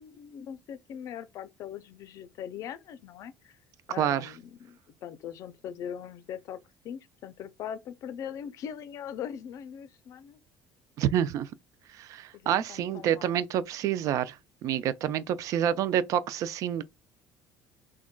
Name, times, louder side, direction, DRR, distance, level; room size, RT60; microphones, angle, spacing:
voice 1, 0.0-3.6 3.9-6.6 6.8-10.4 12.3-13.4, left 9 dB, 60° left, 0.4 m, -41 dB
voice 2, 4.0-4.3 11.0-11.5 12.0-14.4 14.6-16.9, right 10 dB, 60° right, 0.3 m, -28 dB
3.6 x 2.2 x 2.2 m
cardioid pair, 105°, 6 cm